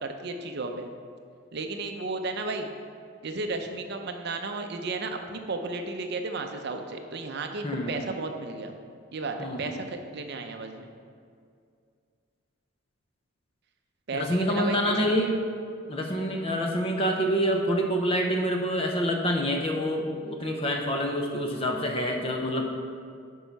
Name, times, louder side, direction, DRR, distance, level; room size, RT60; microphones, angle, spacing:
voice 1, 0.0-0.9 1.5-2.7 3.2-8.8 9.1-10.9 14.1-15.3, right 3 dB, 50° right, 5 dB, 0.6 m, -34 dB
voice 2, 9.4-9.8 14.1-15.3 15.9-22.7, equal, 25° left, 2 dB, 0.7 m, -27 dB
8.3 x 5.5 x 4.6 m, 2.3 s
head